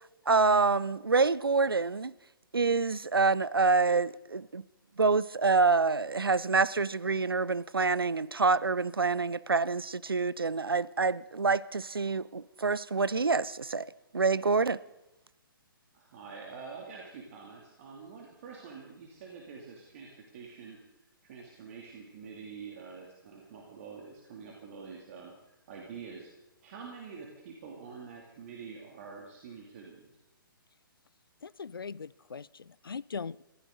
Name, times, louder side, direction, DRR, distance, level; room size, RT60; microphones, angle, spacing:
voice 1, 0.3-2.1 2.5-4.6 5.0-13.9 14.1-14.8, right 4 dB, 80° right, 0.6 m, -26 dB
voice 2, 15.9-20.8 21.2-26.3 26.6-30.1, right 5 dB, 40° right, 2.8 m, -46 dB
voice 3, 31.4-33.4, left 5 dB, 75° left, 0.4 m, -40 dB
22.5 x 15.5 x 3.9 m
figure-of-eight pair, 130°, 12 cm